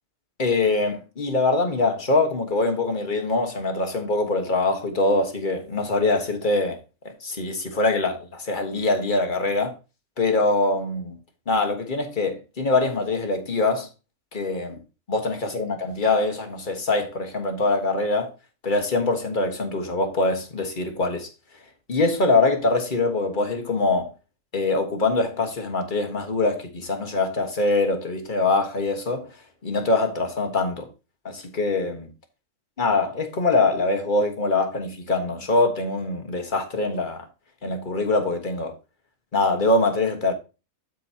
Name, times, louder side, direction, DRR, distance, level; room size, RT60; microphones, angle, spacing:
voice 1, 0.4-6.8 7.2-9.7 10.2-11.2 11.5-13.9 14.3-14.8 15.1-18.3 18.6-21.3 21.9-24.1 24.5-29.3 29.6-30.9 31.2-32.1 32.8-37.2 37.6-38.7 39.3-40.3, left 2 dB, 35° left, 1.5 m, -23 dB
12.5 x 4.7 x 2.8 m
omnidirectional pair, 1.5 m